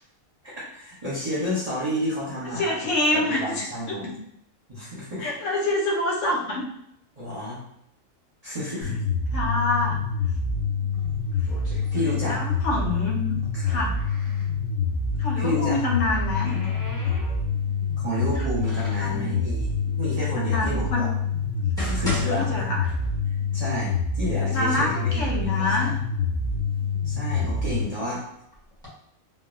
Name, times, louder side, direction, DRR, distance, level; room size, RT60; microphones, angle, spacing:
voice 1, 0.4-4.1 4.7-5.2 7.2-7.6 8.4-9.0 11.9-12.4 13.5-13.8 15.4-15.8 18.0-21.1 21.8-22.5 23.5-25.9 27.0-28.2, equal, 35° right, -7 dB, 0.7 m, -31 dB
voice 2, 2.5-4.2 5.2-6.7 8.9-9.0 9.3-10.0 12.3-13.3 13.7-14.0 15.2-16.5 19.0-19.3 20.4-21.0 21.6-21.7 22.3-22.8 24.4-26.0, left 2 dB, 70° left, -2 dB, 0.9 m, -26 dB
sound 1, 8.8-27.8, left 5 dB, 30° left, 1.1 m, -26 dB
sound 2, 10.9-12.8 13.1-14.5 15.6-17.7 18.2-19.2 19.9-20.0 20.7-20.8 21.4-23.4 23.7-23.8 24.6-24.7 25.0-25.7 26.2-27.9 28.5-28.9, left 1 dB, 5° left, 0.8 m, -38 dB
3.2 x 2.1 x 2.5 m, 0.75 s
omnidirectional pair, 1.4 m